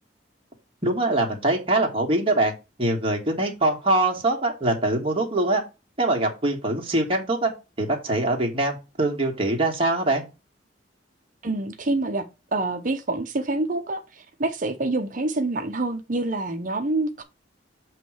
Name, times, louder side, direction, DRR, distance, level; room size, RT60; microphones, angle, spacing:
voice 1, 0.8-2.5 2.8-5.6 6.0-7.5 7.8-10.2, right 2 dB, 30° right, 1.8 m, -23 dB
voice 2, 11.4-17.2, right 2 dB, 45° right, 0.7 m, -27 dB
7.5 x 3.1 x 6.1 m
head